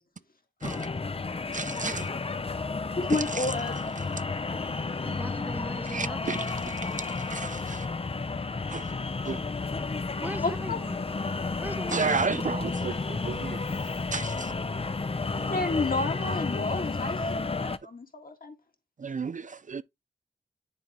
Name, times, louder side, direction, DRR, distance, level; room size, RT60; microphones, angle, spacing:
sound 1, 0.6-17.8, left 3 dB, 35° left, 0.5 m, -32 dB
voice 1, 0.6-1.0 1.6-2.1 5.0-6.5 10.2-11.1 11.6-12.5, right 1 dB, 10° right, 0.7 m, -40 dB
voice 2, 1.5-2.1 3.3-3.5 5.9-6.4 6.7-7.9 8.7-8.9 9.3-9.4 11.9-13.6 14.1-14.5 19.0-19.8, right 5 dB, 45° right, 0.4 m, -32 dB
voice 3, 3.0-3.8 10.4-10.8 15.5-18.5, left 3 dB, 55° left, 1.7 m, -31 dB
9.9 x 3.7 x 2.9 m
cardioid pair, 45°, 18 cm